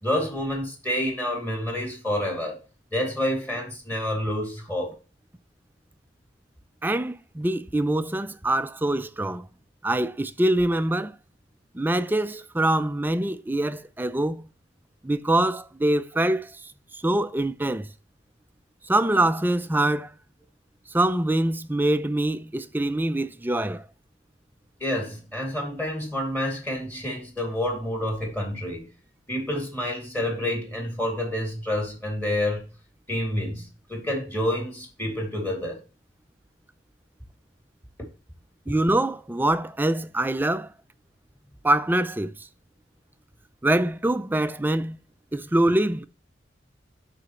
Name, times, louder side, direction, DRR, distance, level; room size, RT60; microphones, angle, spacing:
voice 1, 0.0-2.6 2.9-4.9 24.8-28.9 29.3-32.6 33.1-35.8, left 1 dB, 10° left, 2.6 m, -28 dB
voice 2, 6.8-9.5 9.8-11.2 11.7-14.5 15.0-16.5 16.9-17.9 18.9-20.1 20.9-23.8 38.7-40.7 41.6-42.3 43.6-45.0 45.3-46.0, right 1 dB, 10° right, 0.4 m, -24 dB
12.5 x 4.2 x 3.0 m
head